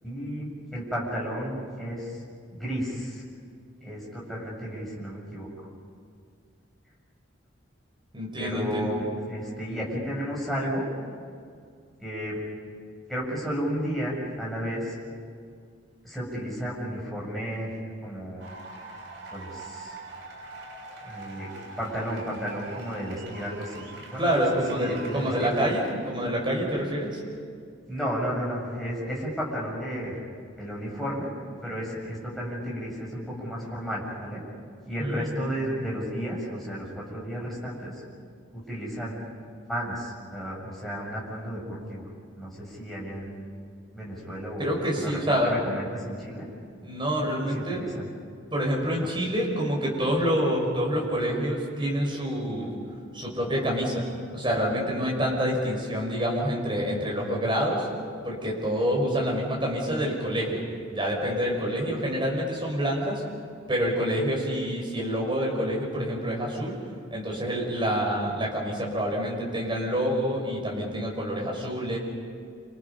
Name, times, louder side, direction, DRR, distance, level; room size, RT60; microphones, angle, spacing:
voice 1, 0.0-2.2 2.5-3.2 3.8-5.5 8.4-10.9 12.0-12.4 13.1-15.0 16.0-17.7 18.0-18.6 19.3-20.0 21.0-21.5 21.8-24.4 24.7-25.5 27.9-30.2 30.5-31.3 31.6-34.4 34.9-38.0 38.5-39.2 39.7-42.1 42.4-43.4 43.9-44.7 44.9-46.5 47.7-48.0 49.0-49.1, equal, ahead, -6 dB, 7.3 m, -33 dB
voice 2, 8.1-8.9 24.2-27.2 35.0-35.5 44.6-45.5 46.8-47.8 48.5-52.8 53.1-54.0 54.3-57.9 58.2-60.6 60.9-63.2 63.7-66.8 67.1-72.0, equal, 25° right, -2 dB, 6.3 m, -27 dB
sound 1, 18.4-25.9, right 3 dB, 90° right, 6.7 m, -43 dB
29.0 x 27.5 x 5.6 m, 2.2 s
head